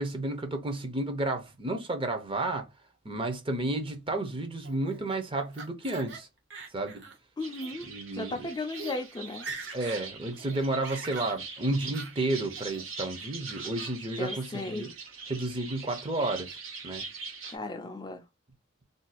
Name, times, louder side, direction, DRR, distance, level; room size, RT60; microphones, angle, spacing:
voice 1, 0.0-2.7 3.0-6.3 6.7-7.0 7.8-8.5 9.7-14.9 15.3-16.6 16.8-17.0, right 2 dB, 25° right, 0.6 m, -32 dB
Laughter, 4.6-6.2 6.5-7.2 7.5-7.7 8.4-8.5 8.7-9.0 9.3-10.1 10.4-11.3 11.9-12.1 12.6-13.0 13.5-13.9, right 4 dB, 60° right, 0.8 m, -43 dB
voice 2, 7.4-9.5 14.2-14.9 17.5-18.2, left 2 dB, 20° left, 0.3 m, -36 dB
sound 1, 7.4-17.6, right 4 dB, 85° right, 1.0 m, -42 dB
2.5 x 2.3 x 3.9 m
head